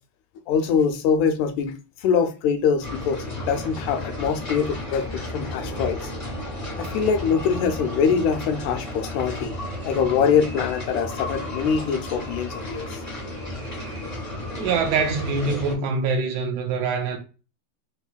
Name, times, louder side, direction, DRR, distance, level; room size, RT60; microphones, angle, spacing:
voice 1, 0.5-6.1 6.8-9.5 9.8-13.0, left 6 dB, 80° left, 1.8 m, -23 dB
sound 1, 2.8-15.7, left 1 dB, 25° left, 0.9 m, -33 dB
voice 2, 14.5-17.2, right 4 dB, 80° right, 2.2 m, -24 dB
5.5 x 3.0 x 2.2 m
omnidirectional pair, 3.4 m